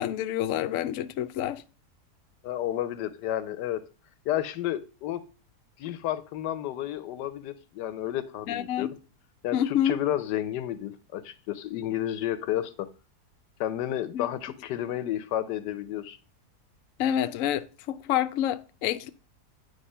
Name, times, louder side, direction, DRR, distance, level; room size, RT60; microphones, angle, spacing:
voice 1, 0.0-1.6 8.5-8.9 9.5-9.9 14.1-14.3 17.0-19.1, left 11 dB, 65° left, 0.8 m, -28 dB
voice 2, 2.4-3.9 4.3-5.2 5.8-8.9 9.4-12.9 13.6-16.2, left 12 dB, 90° left, 1.3 m, -31 dB
9.3 x 3.4 x 5.4 m
omnidirectional pair, 1.8 m